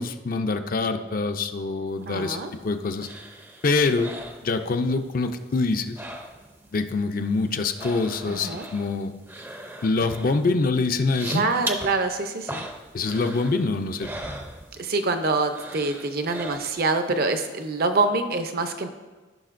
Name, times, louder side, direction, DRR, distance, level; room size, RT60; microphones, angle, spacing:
voice 1, 0.0-3.1 3.6-4.1 4.4-6.0 6.7-9.1 9.8-11.5 12.9-14.1, left 3 dB, 45° left, 7 dB, 0.5 m, -25 dB
sound 1, 2.0-5.1 5.3-6.7 7.0-15.1 15.5-17.0 17.4-17.5, right 1 dB, 10° right, 0.5 m, -39 dB
voice 2, 2.1-2.5 8.3-8.7 11.3-12.7 14.8-18.9, right 3 dB, 50° right, 7 dB, 0.6 m, -25 dB
14.5 x 5.7 x 2.5 m, 1.3 s
head